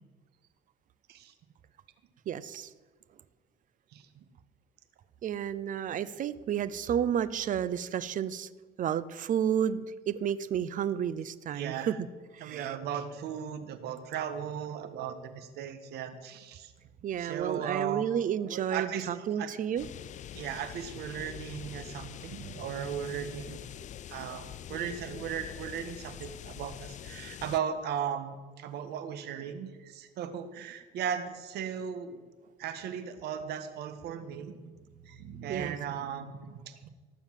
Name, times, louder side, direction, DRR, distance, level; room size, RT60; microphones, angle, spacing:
voice 1, 2.3-2.7 5.2-8.5 8.8-12.0 12.3-12.7 17.0-19.9 35.5-35.7, right 9 dB, 50° right, 17 dB, 0.8 m, -31 dB
voice 2, 11.5-11.9 12.4-16.7 17.2-18.1 18.4-19.5 20.3-23.6 24.1-32.2 32.6-36.8, right 8 dB, 75° right, 11 dB, 1.5 m, -37 dB
sound 1, 19.8-27.6, left 10 dB, 45° left, 0.4 m, -44 dB
18.5 x 7.2 x 7.5 m, 1.4 s
cardioid pair, 110°, 17 cm